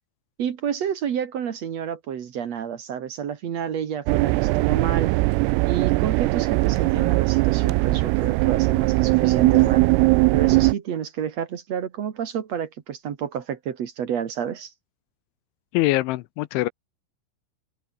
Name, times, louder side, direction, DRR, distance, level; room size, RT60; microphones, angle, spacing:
voice 1, 0.4-5.1 5.6-9.9 10.3-14.7, right 8 dB, 70° right, 1.6 m, -29 dB
sound 1, 4.1-10.7, right 23 dB, 90° right, 3.3 m, -20 dB
voice 2, 15.7-16.7, left 19 dB, 80° left, 2.9 m, -23 dB
open air
omnidirectional pair, 5.9 m